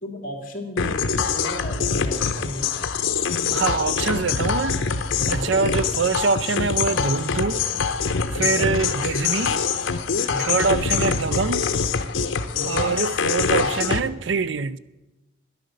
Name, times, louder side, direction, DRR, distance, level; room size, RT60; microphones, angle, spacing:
voice 1, 0.0-2.7 5.1-5.5 8.3-8.7 10.3-10.6 12.5-12.9, equal, 45° left, 2.4 m, -34 dB
sound 1, 0.8-14.0, left 5 dB, 85° left, 0.8 m, -24 dB
voice 2, 3.5-4.8 5.3-7.6 8.3-9.6 10.4-11.7 12.6-14.8, right 5 dB, 70° right, 0.5 m, -24 dB
10.5 x 10.5 x 6.5 m
head